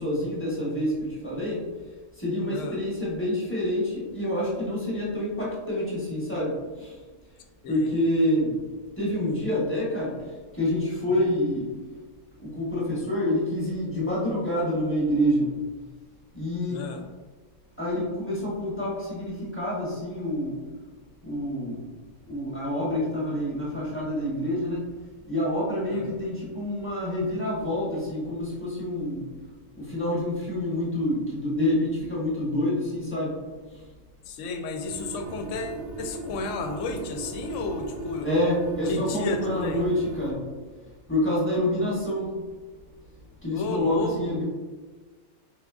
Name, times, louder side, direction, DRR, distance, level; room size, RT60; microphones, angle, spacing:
voice 1, 0.0-1.6 2.2-7.0 7.7-8.6 9.0-10.1 10.5-11.7 12.4-15.5 16.3-16.9 17.8-20.6 21.2-21.8 22.3-24.9 25.3-29.2 29.8-33.4 38.2-40.4 41.1-42.3 43.4-44.4, left 1 dB, 10° left, -7 dB, 0.9 m, -27 dB
voice 2, 7.6-8.0 11.1-11.3 16.7-17.0 25.9-26.1 34.3-38.3 38.8-39.8 43.5-44.3, left 3 dB, 70° left, 4 dB, 0.8 m, -32 dB
sound 1, 34.8-40.3, right 2 dB, 70° right, 1.1 m, -37 dB
4.5 x 3.6 x 2.4 m, 1.4 s
omnidirectional pair, 1.5 m